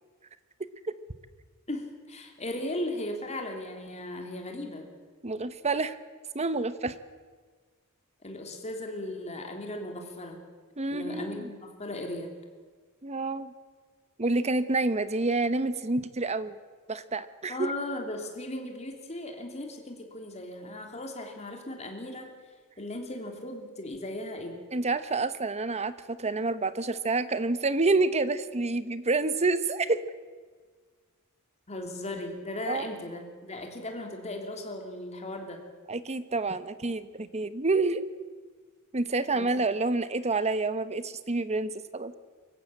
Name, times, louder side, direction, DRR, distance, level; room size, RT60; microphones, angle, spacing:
voice 1, 1.7-4.9 8.2-10.4 10.9-12.3 17.5-22.3 22.8-24.6 31.7-35.6 39.3-39.5, left 1 dB, 30° left, 3 dB, 3.2 m, -37 dB
voice 2, 5.2-6.0 6.3-6.9 10.8-11.5 13.0-13.5 14.2-16.6 16.9-17.7 24.7-30.0 32.7-32.9 35.9-38.0 38.9-42.1, right 3 dB, 30° right, 13 dB, 1.0 m, -28 dB
24.5 x 14.5 x 8.8 m, 1.5 s
head